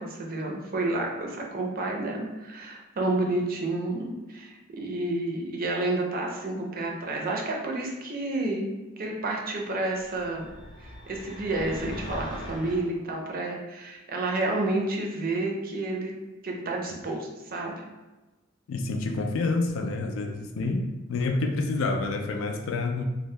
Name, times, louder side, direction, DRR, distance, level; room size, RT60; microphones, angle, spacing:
voice 1, 0.0-8.7 9.0-10.5 10.8-16.1 16.4-17.8, right 2 dB, 45° right, 0 dB, 0.5 m, -30 dB
sound 1, 10.0-12.9, equal, 20° left, 0.6 m, -41 dB
voice 2, 18.7-23.0, left 3 dB, 80° left, 4 dB, 0.4 m, -28 dB
2.7 x 2.0 x 3.2 m, 1.1 s
head